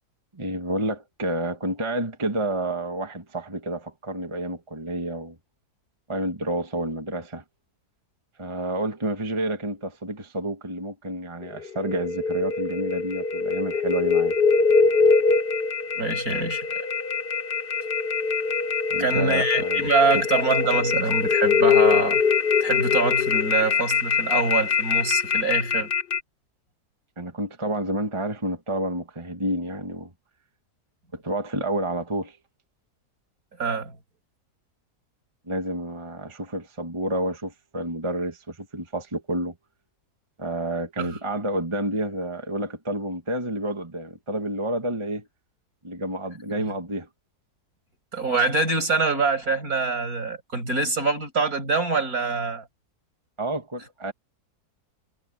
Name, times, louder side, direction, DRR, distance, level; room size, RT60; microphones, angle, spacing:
voice 1, 0.3-5.3 6.1-7.4 8.4-14.3 18.9-19.9 27.2-30.1 31.1-32.4 35.5-39.5 40.4-45.3 45.8-47.1 53.4-54.1, right 1 dB, 20° right, 1.6 m, -29 dB
sound 1, 11.4-26.2, left 5 dB, 40° left, 1.0 m, -23 dB
voice 2, 16.0-16.9 19.0-22.2 22.6-25.9 33.6-34.0 41.0-41.2 48.1-52.7, right 3 dB, 65° right, 6.7 m, -25 dB
omnidirectional pair, 1.7 m